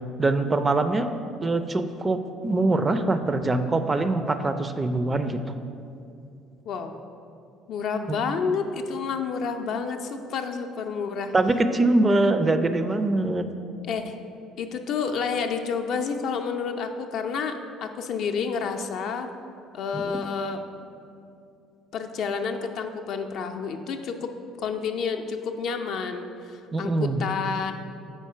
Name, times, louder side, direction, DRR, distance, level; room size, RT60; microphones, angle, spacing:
voice 1, 0.2-1.1 1.4-5.4 8.1-8.3 11.3-13.5 19.9-20.2 26.7-27.2, right 2 dB, 25° right, 9 dB, 0.4 m, -23 dB
voice 2, 7.7-11.3 13.8-14.2 14.6-19.3 19.7-20.6 21.9-24.3 24.6-27.7, left 5 dB, 55° left, 6 dB, 0.4 m, -29 dB
4.5 x 4.2 x 5.6 m, 2.6 s
figure-of-eight pair, 55°, 0 cm